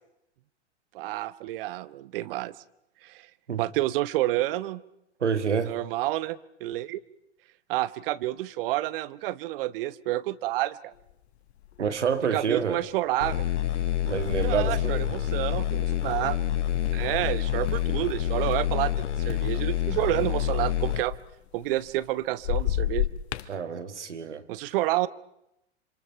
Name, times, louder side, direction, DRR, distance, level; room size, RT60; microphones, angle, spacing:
voice 1, 0.9-2.5 3.0-3.3 3.6-4.8 5.6-7.0 7.7-10.9 12.3-13.4 14.4-16.4 16.9-18.9 19.2-21.2 21.5-23.1 24.5-25.1, right 16 dB, 50° right, 1.0 m, -29 dB
voice 2, 5.2-5.7 11.8-12.8 14.0-15.1 23.5-24.5, right 6 dB, 80° right, 2.1 m, -28 dB
sound 1, 11.1-11.2 11.6-12.1 12.6-12.8 13.7-19.0 19.3-22.1 22.4-23.5, left 12 dB, 65° left, 1.2 m, -34 dB
sound 2, 13.2-21.0, left 11 dB, 90° left, 0.8 m, -27 dB
27.0 x 26.0 x 5.7 m
hypercardioid pair, 105°, 35 cm